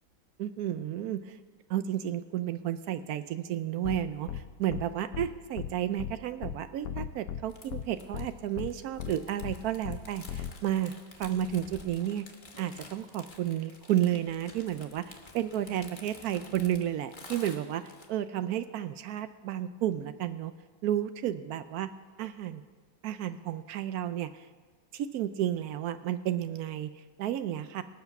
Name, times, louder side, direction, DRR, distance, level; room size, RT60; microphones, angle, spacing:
voice 1, 0.4-1.4 1.7-10.9 11.2-12.3 12.6-20.5 20.8-21.9 22.2-22.6 23.0-24.5 24.9-27.8, right 11 dB, 80° right, 11 dB, 0.8 m, -32 dB
sound 1, 3.8-4.0 4.3-4.4 4.7-4.8 5.1-5.3 5.6-5.7 6.0-6.1 6.4-6.5 6.8-7.4 7.7-7.8 8.1-8.3 8.6-8.7 9.0-9.1 9.4-9.5 9.8-10.0 10.3-10.5, left 9 dB, 65° left, 0.9 m, -36 dB
sound 2, 7.5-18.1, left 3 dB, 30° left, 1.1 m, -51 dB
18.5 x 8.0 x 5.9 m, 1.4 s
omnidirectional pair, 2.1 m